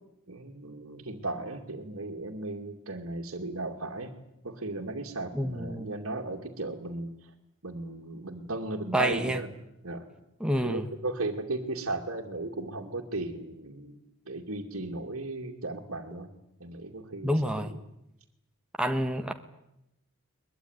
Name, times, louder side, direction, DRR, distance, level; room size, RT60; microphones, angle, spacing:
voice 1, 0.3-4.2 4.4-7.3 7.6-9.5 9.8-10.0 10.6-16.3 16.6-17.3, right 2 dB, 70° right, -2 dB, 2.5 m, -36 dB
voice 2, 5.3-5.9 8.9-9.4 10.4-10.9 17.2-17.7 18.8-19.3, equal, 5° right, 5 dB, 1.3 m, -28 dB
22.5 x 21.0 x 9.7 m, 0.85 s
head